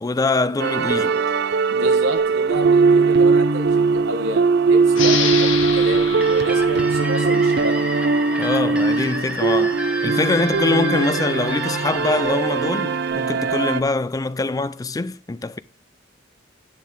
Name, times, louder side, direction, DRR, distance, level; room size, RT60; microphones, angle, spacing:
voice 1, 0.0-1.2 8.4-15.6, left 3 dB, 20° left, 0.3 m, -23 dB
sound 1, 0.6-13.8, right 4 dB, 55° right, 0.5 m, -19 dB
voice 2, 1.7-7.9, right 2 dB, 80° right, 1.1 m, -29 dB
sound 2, 4.9-8.2, left 6 dB, 80° left, 1.6 m, -28 dB
sound 3, 6.2-13.8, equal, 5° right, 1.0 m, -32 dB
9.1 x 7.3 x 4.7 m
head